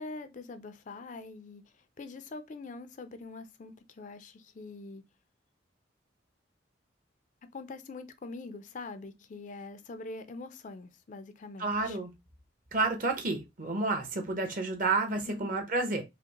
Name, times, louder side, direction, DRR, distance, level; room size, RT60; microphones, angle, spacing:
voice 1, 0.0-1.6 2.0-5.0 7.5-12.0 15.1-15.5, left 3 dB, 45° left, 0.4 m, -44 dB
voice 2, 11.6-12.1 12.7-16.0, right 3 dB, 45° right, 0.9 m, -30 dB
4.9 x 2.1 x 2.9 m
head